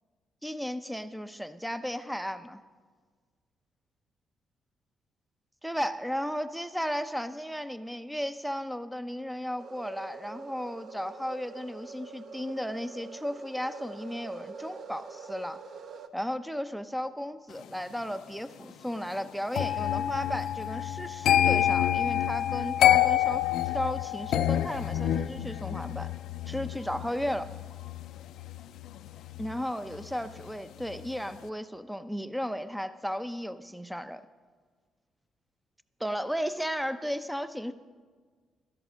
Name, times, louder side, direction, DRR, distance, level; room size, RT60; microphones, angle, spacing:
voice 1, 0.4-2.6 5.6-15.6 16.1-23.4 23.7-26.1 26.5-27.5 29.4-34.2 36.0-37.7, equal, ahead, 12 dB, 0.7 m, -34 dB
sound 1, 9.6-16.1, right 4 dB, 60° right, 0.9 m, -45 dB
sound 2, 19.5-30.5 30.8-31.2, left 11 dB, 80° left, 0.5 m, -28 dB
13.0 x 11.0 x 6.3 m, 1.5 s
cardioid pair, 90°, 0 cm